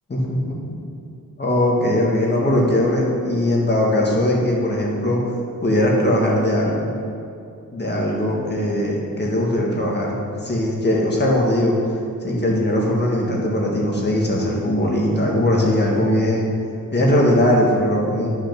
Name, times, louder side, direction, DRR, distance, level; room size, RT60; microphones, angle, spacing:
voice 1, 0.1-0.8 1.4-5.2 5.6-6.9 7.7-10.1 10.4-11.8 12.2-16.5 16.9-18.3, left 1 dB, 30° left, -2 dB, 1.8 m, -20 dB
11.5 x 6.4 x 6.0 m, 2.5 s
wide cardioid pair, 165°, 34 cm